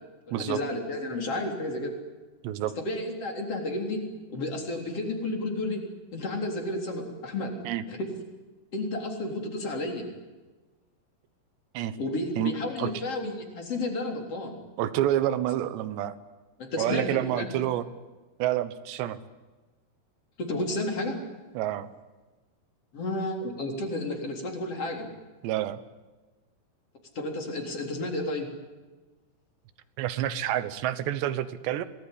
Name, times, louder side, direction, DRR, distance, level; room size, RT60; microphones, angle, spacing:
voice 1, 0.3-1.9 2.8-4.0 4.3-5.8 6.1-7.6 7.9-8.1 8.7-10.1 12.0-14.5 16.6-17.5 20.4-21.2 22.9-25.1 27.2-28.5, left 2 dB, 35° left, 2 dB, 4.4 m, -32 dB
voice 2, 14.8-16.1 16.8-17.9 18.4-19.2 21.5-21.9 25.4-25.8 30.0-31.9, right 12 dB, 90° right, 13 dB, 3.4 m, -28 dB
25.5 x 19.0 x 10.0 m, 1.2 s
omnidirectional pair, 4.9 m